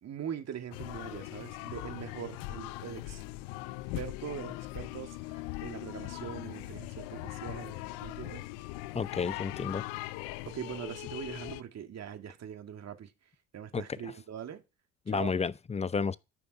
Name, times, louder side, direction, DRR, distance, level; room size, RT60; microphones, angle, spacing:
voice 1, 0.0-3.2 3.9-8.5 10.5-13.1 13.5-14.6 15.1-15.3, right 9 dB, 45° right, 2.1 m, -42 dB
sound 1, 0.7-11.6, left 18 dB, 70° left, 0.6 m, -40 dB
voice 2, 8.9-9.8 13.7-14.1 15.1-16.2, left 5 dB, 20° left, 0.7 m, -32 dB
13.5 x 5.8 x 4.6 m
hypercardioid pair, 55°, 35 cm